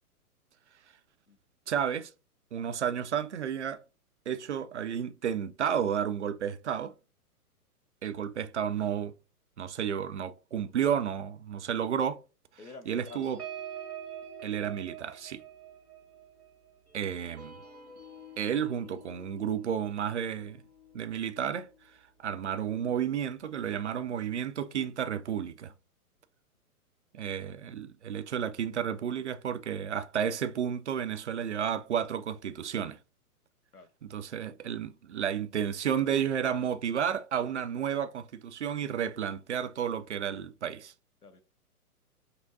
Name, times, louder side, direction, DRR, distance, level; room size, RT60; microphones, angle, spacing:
voice 1, 1.7-2.1 2.5-3.8 4.3-6.9 8.0-9.1 9.6-12.2 12.9-13.4 14.4-15.4 16.9-17.6 18.4-20.6 20.9-21.7 22.2-25.7 27.1-33.0 34.0-40.9, right 8 dB, 50° right, 0.4 m, -32 dB
voice 2, 12.6-13.3 33.7-33.9 41.2-41.4, left 3 dB, 85° left, 0.9 m, -48 dB
sound 1, 13.1-22.0 22.4-22.6 22.9-23.2, right 6 dB, 75° right, 1.6 m, -47 dB
5.2 x 3.1 x 2.6 m
figure-of-eight pair, 120°, 45 cm